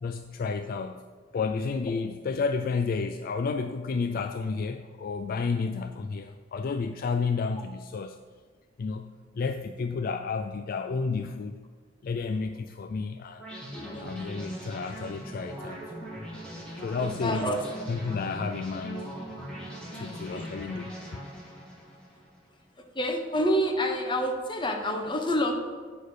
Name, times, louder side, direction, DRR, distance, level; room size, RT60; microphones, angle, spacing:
voice 1, 0.0-1.0 1.3-8.2 8.8-11.6 12.0-13.5 14.0-15.8 16.8-17.6 17.9-19.2 19.9-21.0, left 4 dB, 50° left, 8 dB, 0.3 m, -31 dB
sound 1, 13.4-22.4, right 1 dB, 5° left, 2.4 m, -40 dB
voice 2, 13.7-14.2 17.0-17.6 19.9-20.5 22.9-25.5, equal, 25° left, 3 dB, 1.0 m, -28 dB
9.4 x 6.5 x 5.0 m, 1.5 s
head